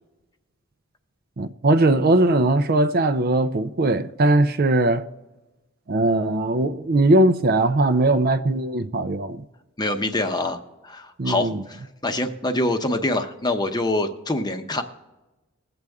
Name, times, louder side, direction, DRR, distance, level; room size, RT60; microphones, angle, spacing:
voice 1, 1.4-5.0 5.9-9.4 11.2-11.6, right 2 dB, 45° right, 0.5 m, -20 dB
voice 2, 9.8-10.6 10.8-14.8, left 2 dB, 20° left, 0.8 m, -25 dB
21.0 x 7.9 x 3.6 m
head